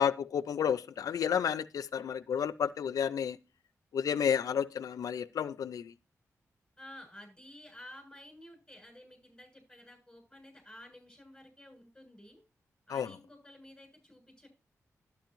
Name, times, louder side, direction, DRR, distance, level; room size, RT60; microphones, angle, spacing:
voice 1, 0.0-3.4 3.9-5.9 12.9-13.1, left 8 dB, 90° left, 0.6 m, -31 dB
voice 2, 6.8-12.4 12.9-14.5, left 1 dB, 10° left, 7.8 m, -52 dB
12.0 x 9.6 x 3.0 m
wide cardioid pair, 110°, 6 cm